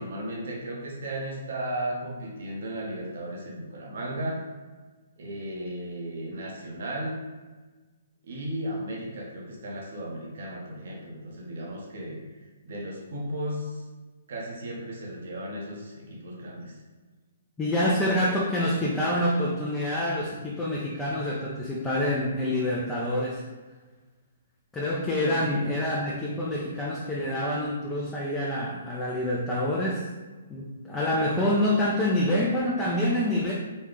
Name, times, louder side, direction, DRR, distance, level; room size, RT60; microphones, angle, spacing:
voice 1, 0.0-4.5 5.2-7.2 8.2-12.3 12.6-13.8 14.3-16.8 25.2-25.8, right 1 dB, 65° right, -2 dB, 1.1 m, -35 dB
voice 2, 17.6-23.4 24.7-30.1 30.5-33.5, left 1 dB, 10° left, -6 dB, 0.5 m, -27 dB
4.2 x 2.4 x 3.7 m, 1.3 s
hypercardioid pair, 145°, 0 cm